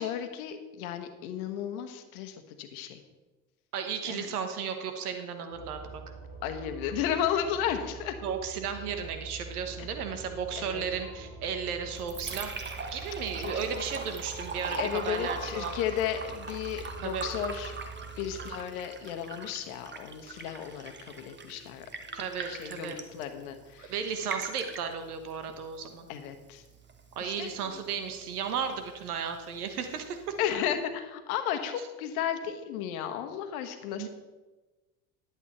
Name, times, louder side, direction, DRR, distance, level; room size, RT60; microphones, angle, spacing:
voice 1, 0.0-3.0 4.0-4.3 6.4-8.1 9.8-9.9 10.6-10.8 13.4-13.5 14.7-17.7 18.2-21.9 22.5-23.9 26.1-26.6 27.2-27.8 30.4-34.1, left 9 dB, 75° left, 8 dB, 1.2 m, -34 dB
voice 2, 3.7-6.0 8.2-12.6 12.9-15.7 17.0-17.3 22.1-23.0 23.8-26.1 27.1-30.4 34.0-34.1, right 6 dB, 85° right, 7 dB, 1.2 m, -34 dB
sound 1, 5.5-18.5, right 4 dB, 60° right, 3.5 m, -45 dB
Liquid, 11.8-30.8, right 4 dB, 25° right, 1.2 m, -42 dB
11.0 x 8.1 x 4.3 m, 1.2 s
hypercardioid pair, 70°, 43 cm